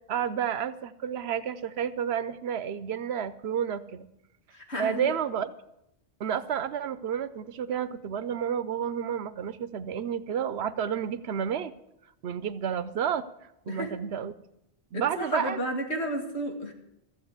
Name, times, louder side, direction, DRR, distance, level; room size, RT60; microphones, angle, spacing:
voice 1, 0.1-4.1 4.8-5.5 6.2-11.7 12.2-13.3 13.7-14.3 14.9-15.6, right 8 dB, 75° right, 16 dB, 0.9 m, -30 dB
voice 2, 4.5-5.2 13.7-14.0 14.9-16.7, equal, 85° left, 3 dB, 2.2 m, -32 dB
14.5 x 8.0 x 7.9 m, 0.83 s
omnidirectional pair, 1.1 m